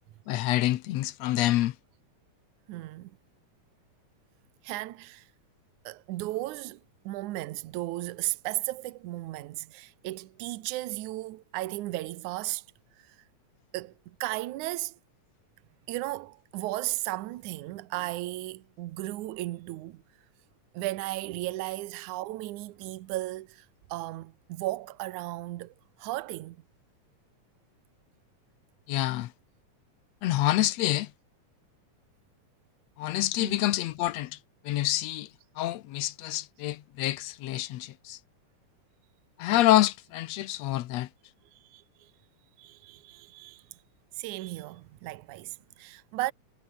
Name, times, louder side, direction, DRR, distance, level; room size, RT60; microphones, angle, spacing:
voice 1, 0.3-1.7 28.9-29.3 30.2-31.1 33.0-34.4 34.7-35.3 35.6-38.2 39.4-41.1, left 15 dB, 70° left, 1.8 m, -27 dB
voice 2, 2.7-3.1 4.6-5.3 5.9-6.8 7.1-12.6 13.0-13.2 13.7-15.0 15.9-20.0 20.7-26.6 33.4-33.7 41.5-42.1 42.6-43.6 44.2-46.3, right 18 dB, 80° right, 2.3 m, -35 dB
omnidirectional pair, 3.5 m